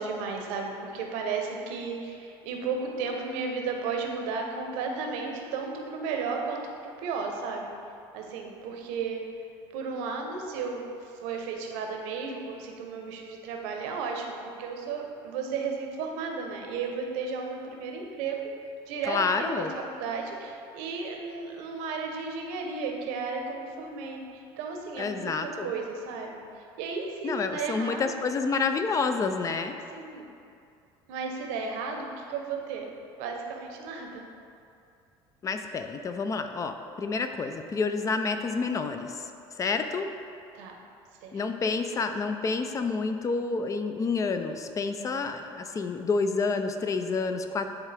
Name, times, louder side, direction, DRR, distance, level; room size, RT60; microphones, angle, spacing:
voice 1, 0.0-7.7 8.1-9.2 9.7-18.4 18.9-25.3 25.6-26.4 26.8-28.1 29.9-30.3 31.1-32.9 33.2-34.2 40.5-40.7 41.2-41.4, right 4 dB, 85° right, 2 dB, 0.9 m, -34 dB
voice 2, 19.1-19.8 25.0-25.7 27.2-29.7 35.4-39.3 39.6-40.1 41.3-47.7, left 4 dB, 30° left, 7 dB, 0.5 m, -29 dB
10.5 x 3.6 x 3.4 m, 2.5 s
supercardioid pair, 105°, 12 cm